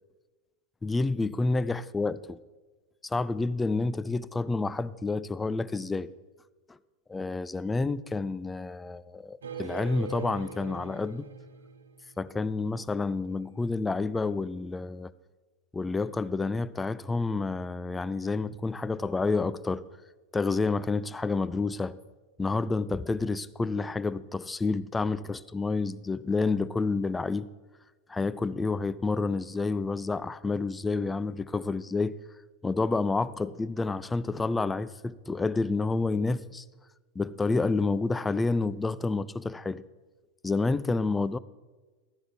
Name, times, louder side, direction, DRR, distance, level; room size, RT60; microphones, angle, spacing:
voice 1, 0.8-2.4 3.0-6.1 6.7-6.8 7.1-11.3 12.2-15.1 15.7-19.8 20.3-22.0 22.4-27.5 28.1-32.2 32.6-36.6 37.2-39.8 40.4-41.4, left 3 dB, 10° left, 0.4 m, -29 dB
sound 1, 9.4-12.5, right 6 dB, 65° right, 1.1 m, -41 dB
14.5 x 11.5 x 3.5 m
figure-of-eight pair, 90°, 0 cm